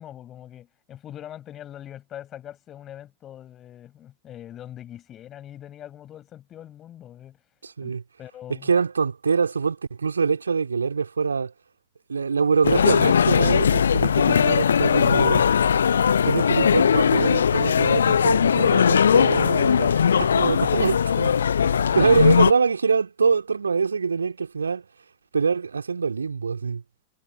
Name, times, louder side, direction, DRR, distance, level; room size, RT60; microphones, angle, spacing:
voice 1, 0.0-7.4 7.8-7.9 8.2-8.7, left 11 dB, 30° left, 5.7 m, -42 dB
voice 2, 7.6-8.0 8.6-11.5 12.1-15.4 16.2-19.9 20.2-21.3 21.9-24.9 25.3-26.8, right 5 dB, 75° right, 3.0 m, -24 dB
sound 1, 12.6-22.5, left 7 dB, 70° left, 0.9 m, -19 dB
figure-of-eight pair, 90°, 0 cm